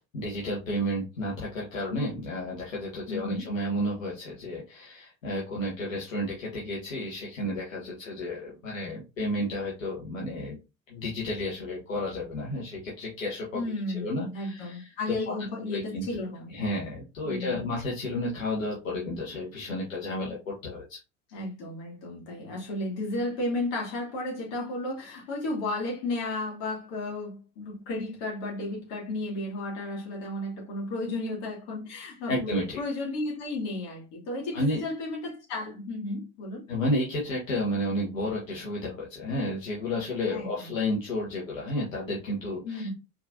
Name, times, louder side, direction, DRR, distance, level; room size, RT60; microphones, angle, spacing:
voice 1, 0.1-10.6 10.9-13.6 13.9-15.3 15.7-16.2 16.5-21.0 32.3-32.8 34.5-34.8 36.7-42.9, left 1 dB, 85° left, 1.4 m, -32 dB
voice 2, 3.1-3.5 13.5-16.6 17.2-17.6 21.3-36.6 40.3-40.7 42.6-42.9, left 2 dB, 60° left, 2.5 m, -33 dB
4.5 x 3.7 x 2.7 m
figure-of-eight pair, 70°, 39 cm